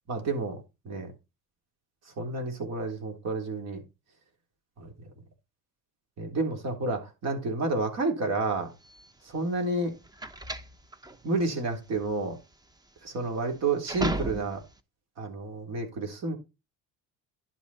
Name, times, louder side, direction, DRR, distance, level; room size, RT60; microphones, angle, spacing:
voice 1, 0.1-1.1 2.2-3.8 4.8-4.9 6.2-8.7 9.3-9.9 11.2-12.4 13.0-14.6 15.2-16.4, right 3 dB, 50° right, 3.6 m, -30 dB
sound 1, 8.8-14.8, right 2 dB, 10° right, 0.9 m, -36 dB
11.0 x 5.3 x 4.2 m
cardioid pair, 105°, 33 cm